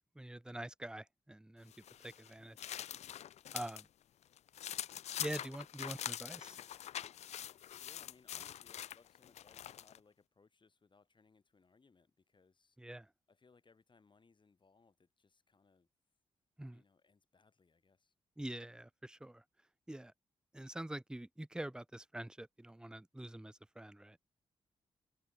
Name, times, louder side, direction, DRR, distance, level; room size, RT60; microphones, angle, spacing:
voice 1, 0.0-1.7 2.0-2.6 3.5-3.9 5.2-6.6 12.8-13.1 16.6-16.8 18.4-19.4 19.9-20.1 20.5-24.2, right 1 dB, 5° right, 0.6 m, -45 dB
sound 1, 1.7-3.9 4.2-10.0, left 11 dB, 70° left, 0.5 m, -44 dB
voice 2, 7.8-12.8 13.3-15.9 16.7-18.1, left 4 dB, 45° left, 6.1 m, -68 dB
open air
supercardioid pair, 50°, 12 cm